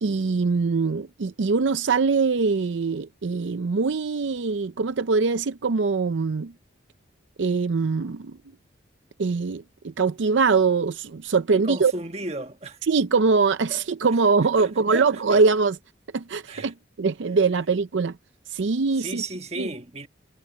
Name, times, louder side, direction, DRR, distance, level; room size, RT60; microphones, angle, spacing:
voice 1, 0.0-6.5 7.4-8.4 9.2-11.9 12.9-15.8 16.1-18.2 18.5-19.2 19.6-19.7, right 4 dB, 80° right, 0.5 m, -23 dB
voice 2, 11.5-12.8 13.7-13.8 14.6-15.4 16.5-16.7 19.0-20.1, right 2 dB, 35° right, 1.5 m, -34 dB
head